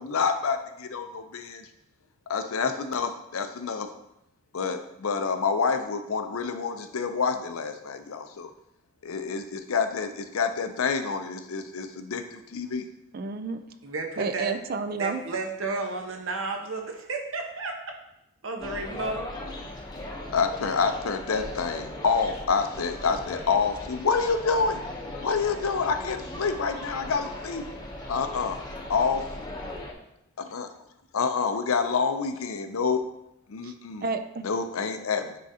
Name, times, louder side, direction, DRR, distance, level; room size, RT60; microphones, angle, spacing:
voice 1, 0.0-1.7 2.3-3.9 4.5-8.5 9.0-12.8 20.3-24.8 25.2-27.7 28.1-28.6 28.9-29.3 30.5-30.7 31.1-33.0 33.5-34.0 34.4-35.4, left 5 dB, 80° left, 8 dB, 0.6 m, -27 dB
voice 2, 13.1-13.6 14.2-15.2 33.6-33.7 34.0-34.5, right 4 dB, 45° right, 9 dB, 0.4 m, -30 dB
voice 3, 13.8-14.5 15.0-17.7 18.4-19.2, right 3 dB, 65° right, 2 dB, 1.0 m, -32 dB
sound 1, 18.6-29.9, left 1 dB, 20° left, 0.8 m, -38 dB
9.4 x 3.8 x 2.8 m, 0.82 s
head